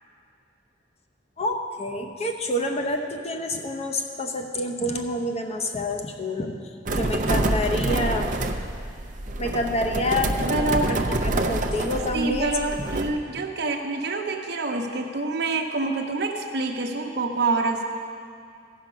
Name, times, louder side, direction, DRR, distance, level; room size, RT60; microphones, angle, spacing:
voice 1, 1.4-6.5 6.9-8.3 9.4-12.5, left 1 dB, 35° left, 3 dB, 0.8 m, -28 dB
sound 1, 6.9-13.1, right 2 dB, 45° right, 0.6 m, -26 dB
voice 2, 10.5-10.9 12.1-17.8, right 3 dB, 65° right, 2 dB, 0.9 m, -26 dB
15.5 x 5.8 x 5.2 m, 2.4 s
head